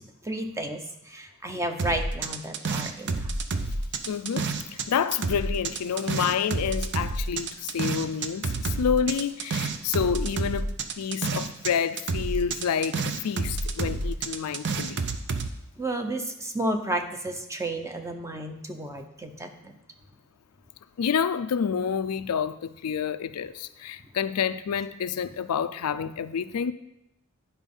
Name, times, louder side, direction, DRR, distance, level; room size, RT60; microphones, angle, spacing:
voice 1, 0.2-3.2 15.8-19.8, right 1 dB, 15° right, 0.7 m, -32 dB
sound 1, 1.8-4.9 5.1-11.7 12.0-15.5, right 3 dB, 55° right, 0.6 m, -29 dB
voice 2, 4.1-4.5 4.9-15.0 21.0-26.7, left 7 dB, 85° left, 0.4 m, -28 dB
9.8 x 5.1 x 5.4 m
head